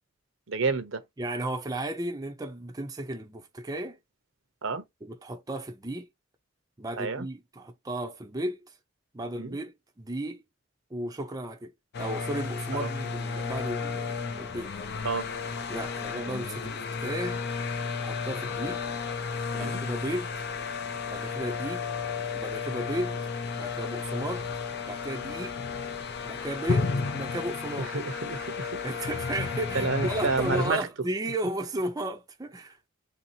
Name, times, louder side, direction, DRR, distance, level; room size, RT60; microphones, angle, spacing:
voice 1, 0.5-1.0 4.6-4.8 7.0-7.3 9.4-9.6 12.7-12.9 15.0-15.3 19.6-19.8 27.8-28.8 29.7-30.9, right 4 dB, 70° right, 0.7 m, -29 dB
voice 2, 1.2-4.0 5.0-6.1 6.8-8.6 9.1-10.4 10.9-11.7 12.0-14.7 15.7-17.4 18.0-18.8 19.5-20.4 21.1-21.8 22.3-23.2 23.6-24.5 24.8-25.6 26.2-27.9 28.8-32.9, right 1 dB, 20° right, 0.5 m, -34 dB
Leafblowing (Extract), 11.9-30.7, left 5 dB, 55° left, 0.5 m, -33 dB
3.5 x 2.7 x 2.7 m
head